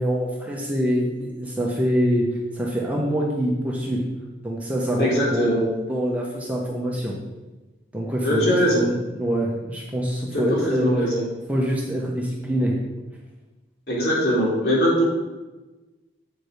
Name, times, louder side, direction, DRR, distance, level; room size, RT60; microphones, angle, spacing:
voice 1, 0.0-2.3 2.5-4.0 4.4-7.1 7.9-10.9 11.5-12.7, equal, 10° right, -3 dB, 1.1 m, -25 dB
voice 2, 5.0-5.6 8.2-8.8 10.3-10.4 10.8-11.2 13.9-15.0, equal, 60° left, -5 dB, 2.9 m, -21 dB
7.9 x 5.0 x 5.0 m, 1.1 s
head